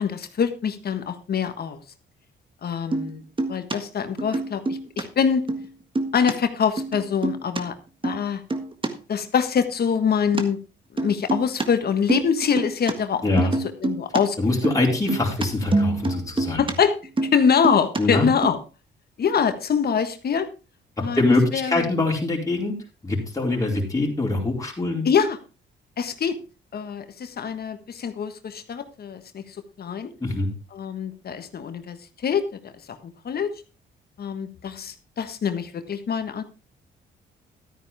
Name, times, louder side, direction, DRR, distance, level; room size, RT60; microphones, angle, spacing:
voice 1, 0.0-1.8 2.6-3.2 3.5-5.4 6.1-7.7 8.0-8.4 9.1-10.6 10.9-13.4 13.8-14.4 14.6-14.7 16.6-17.0 17.2-18.6 19.2-20.5 21.0-21.2 21.5-21.8 25.0-25.4 26.0-26.4 26.7-30.1 30.7-32.0 32.2-33.0 33.2-33.5 34.2-36.4, left 7 dB, 50° left, 10 dB, 1.5 m, -24 dB
sound 1, 2.9-3.1 3.4-3.8 4.2-5.0 5.3-5.7 6.0-6.3 6.8-7.6 8.0-8.2 8.5-8.9 10.3-10.4 11.0-11.7 11.9-12.9 13.4-14.2 14.5-16.7 17.0-18.0 18.4-18.5, right 2 dB, 25° right, 1.6 m, -26 dB
voice 2, 13.2-13.5 14.4-16.6 18.0-18.3 21.0-22.7 23.0-25.0 30.2-30.5, left 2 dB, 15° left, -2 dB, 4.5 m, -23 dB
13.0 x 9.6 x 3.5 m, 0.32 s
cardioid pair, 90°, 20 cm